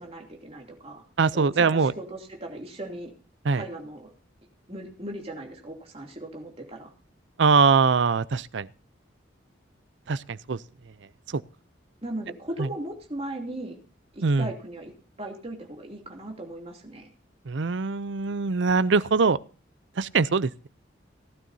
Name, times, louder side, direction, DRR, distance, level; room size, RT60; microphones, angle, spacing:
voice 1, 0.0-1.1 1.3-3.1 3.5-4.1 4.7-6.9 12.0-13.8 14.1-14.9 15.2-17.1, right 1 dB, 30° right, 2.8 m, -38 dB
voice 2, 1.2-1.9 3.4-3.6 7.4-8.7 10.1-10.6 11.3-11.4 12.6-12.7 14.2-14.5 17.5-19.4 20.0-20.7, right 4 dB, 65° right, 0.5 m, -22 dB
18.0 x 12.5 x 2.7 m
head